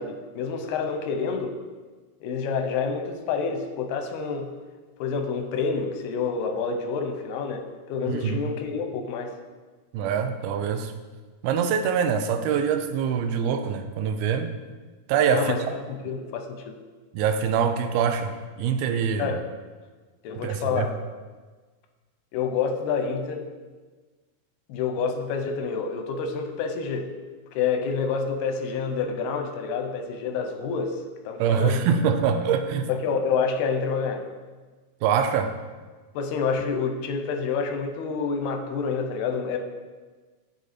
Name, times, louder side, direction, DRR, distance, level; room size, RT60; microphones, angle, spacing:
voice 1, 0.0-1.6 2.2-4.5 5.0-9.3 15.3-16.8 19.2-19.4 20.2-21.0 22.3-23.5 24.7-27.1 27.5-31.8 32.9-34.3 36.2-39.6, left 5 dB, 85° left, 6 dB, 2.8 m, -28 dB
voice 2, 8.1-8.4 9.9-10.9 11.4-14.6 15.1-15.7 17.1-19.4 20.4-20.9 31.4-32.9 35.0-35.5, right 7 dB, 80° right, 8 dB, 2.5 m, -24 dB
8.5 x 8.0 x 4.2 m, 1.3 s
omnidirectional pair, 4.5 m